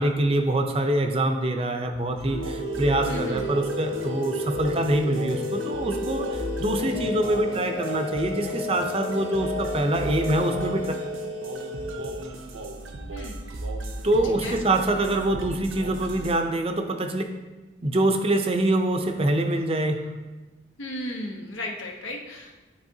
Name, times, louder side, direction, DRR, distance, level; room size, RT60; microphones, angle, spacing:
voice 1, 0.0-10.9 14.0-17.2 17.8-20.0, right 1 dB, 30° right, 5 dB, 0.5 m, -25 dB
sound 1, 2.2-16.4, equal, 85° right, 0.7 m, -34 dB
sound 2, 2.3-12.7, left 2 dB, 55° left, 1.3 m, -34 dB
voice 2, 3.1-3.5 13.1-13.4 14.2-14.6 20.8-22.6, left 1 dB, 85° left, 1 dB, 1.0 m, -35 dB
11.5 x 4.2 x 2.7 m, 1.2 s
head